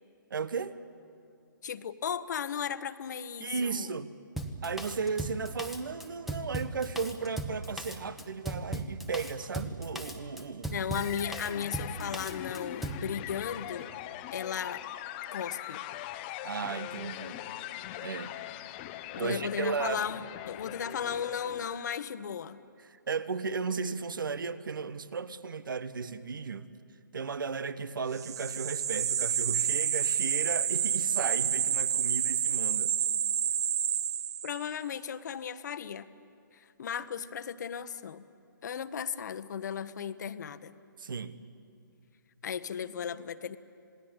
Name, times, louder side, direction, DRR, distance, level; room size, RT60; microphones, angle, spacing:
voice 1, 0.3-0.8 3.4-4.1 4.6-10.7 16.4-17.4 18.0-18.3 19.2-20.0 22.8-26.7 27.1-32.9 41.0-41.4, right 5 dB, 75° right, 1.2 m, -35 dB
voice 2, 1.6-4.0 10.7-13.9 14.3-14.8 15.3-15.8 19.1-22.6 34.4-36.1 36.5-38.2 38.6-40.8 42.4-43.6, left 8 dB, 55° left, 1.1 m, -36 dB
Drum kit, 4.4-13.1, right 1 dB, ahead, 1.2 m, -37 dB
sound 1, 11.0-22.1, left 13 dB, 30° left, 0.9 m, -41 dB
sound 2, 28.2-34.7, right 9 dB, 50° right, 0.9 m, -29 dB
27.0 x 19.5 x 8.9 m
hypercardioid pair, 145°, 11 cm